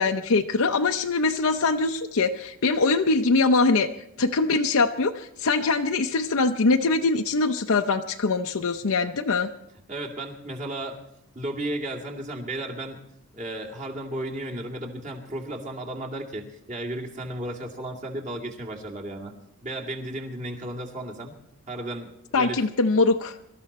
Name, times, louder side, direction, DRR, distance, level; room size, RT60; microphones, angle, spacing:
voice 1, 0.0-3.9 4.2-9.5 22.3-23.3, left 3 dB, 75° left, 4 dB, 0.7 m, -23 dB
voice 2, 9.9-11.0 11.4-13.0 13.3-19.3 19.6-21.3 21.7-22.6, right 1 dB, 35° right, 0 dB, 2.3 m, -34 dB
24.0 x 13.5 x 4.3 m, 0.74 s
head